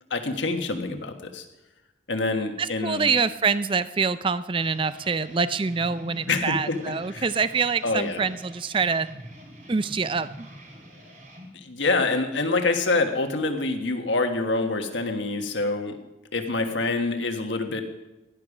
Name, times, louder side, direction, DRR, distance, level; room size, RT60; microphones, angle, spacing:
voice 1, 0.1-1.4 2.1-3.1 6.3-7.3 7.8-8.3 11.5-16.0 16.3-17.9, left 3 dB, 80° left, 5 dB, 1.6 m, -26 dB
voice 2, 2.6-9.1 9.7-10.5, right 5 dB, 25° right, 14 dB, 0.4 m, -25 dB
sound 1, 4.6-11.5, equal, 40° right, 3.4 m, -45 dB
16.5 x 11.5 x 5.0 m, 1.0 s
head